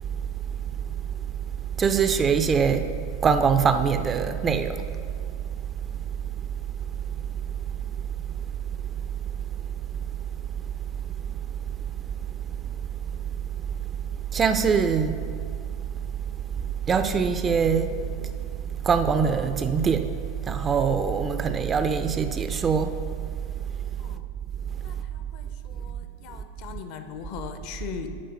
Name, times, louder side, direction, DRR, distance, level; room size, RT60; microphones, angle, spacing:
voice 1, 1.8-2.9 3.2-4.9 14.3-15.3 16.9-18.3 18.8-20.1 20.5-22.9, right 6 dB, 20° right, 0.3 m, -23 dB
voice 2, 24.8-28.2, left 7 dB, 45° left, 0.6 m, -39 dB
10.0 x 3.7 x 5.4 m
figure-of-eight pair, 90°, 0 cm